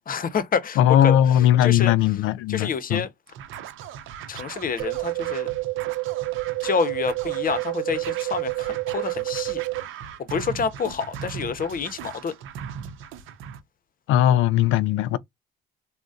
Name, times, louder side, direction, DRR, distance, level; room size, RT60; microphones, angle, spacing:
voice 1, 0.1-1.9 2.5-3.1 4.3-5.5 6.6-9.6 10.3-12.4, left 6 dB, 45° left, 0.7 m, -28 dB
voice 2, 0.8-3.0 14.1-15.2, left 11 dB, 85° left, 0.4 m, -19 dB
Scratching (performance technique), 3.3-13.6, right 8 dB, 85° right, 0.6 m, -39 dB
sound 1, 4.8-9.8, right 22 dB, 70° right, 0.9 m, -28 dB
3.8 x 2.1 x 2.3 m
cardioid pair, 90°, 20 cm